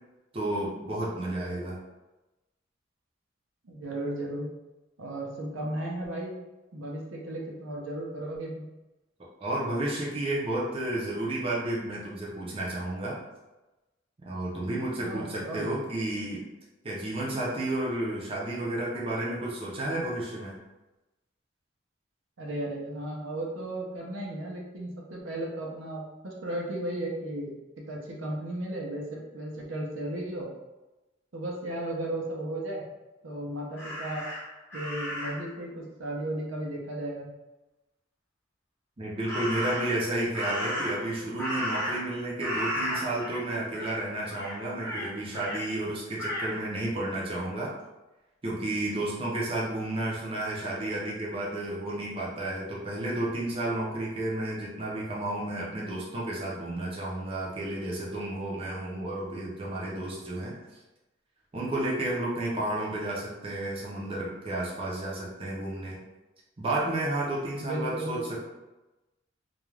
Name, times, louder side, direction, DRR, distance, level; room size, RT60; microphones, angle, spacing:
voice 1, 0.3-1.8 9.2-13.2 14.2-16.4 16.8-20.6 39.0-47.7 48.4-60.6 61.5-66.0 66.6-68.4, right 1 dB, 30° right, -5 dB, 0.5 m, -32 dB
voice 2, 3.6-4.5 5.0-6.3 6.7-8.7 15.0-15.7 22.4-27.5 27.9-30.5 31.3-32.8 33.2-34.2 34.7-37.3 67.6-68.4, right 1 dB, 80° right, -2 dB, 0.6 m, -35 dB
Crow, 33.7-35.5 39.2-40.0 40.3-42.1 42.4-43.4 43.7-44.0 44.3-45.6 46.2-46.5, equal, 10° left, 0.7 m, -34 dB
2.4 x 2.2 x 3.1 m, 1.1 s
head